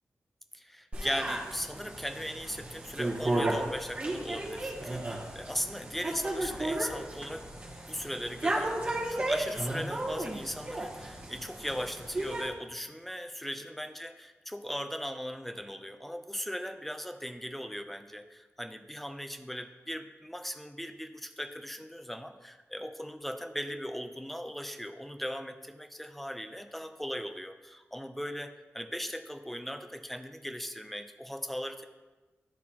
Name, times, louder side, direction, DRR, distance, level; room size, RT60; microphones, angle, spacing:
voice 1, 0.5-31.8, equal, 5° left, 7 dB, 0.4 m, -38 dB
sound 1, 0.9-12.5, right 1 dB, 25° right, 1.3 m, -34 dB
12.0 x 4.2 x 2.8 m, 1.2 s
wide cardioid pair, 160°, 5 cm